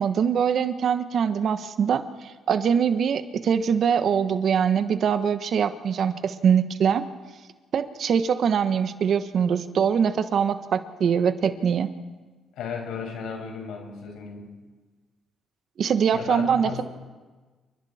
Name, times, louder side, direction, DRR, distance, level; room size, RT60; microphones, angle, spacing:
voice 1, 0.0-7.0 7.7-11.9 15.8-16.8, right 7 dB, 60° right, 10 dB, 1.2 m, -23 dB
voice 2, 12.6-14.5 16.1-16.8, left 6 dB, 85° left, 2 dB, 5.8 m, -34 dB
28.5 x 24.0 x 4.4 m, 1.3 s
cardioid pair, 90°, 0 cm